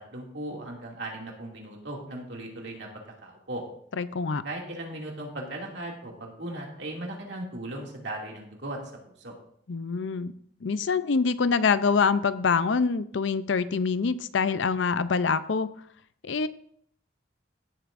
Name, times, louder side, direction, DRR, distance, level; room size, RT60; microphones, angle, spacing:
voice 1, 0.1-2.9 3.2-3.6 4.4-8.8 9.2-9.3, right 1 dB, 70° right, -1 dB, 2.4 m, -37 dB
voice 2, 3.9-4.4 9.7-10.3 10.6-15.7 16.2-16.5, left 5 dB, 75° left, 14 dB, 0.5 m, -25 dB
16.0 x 8.1 x 2.6 m, 0.64 s
head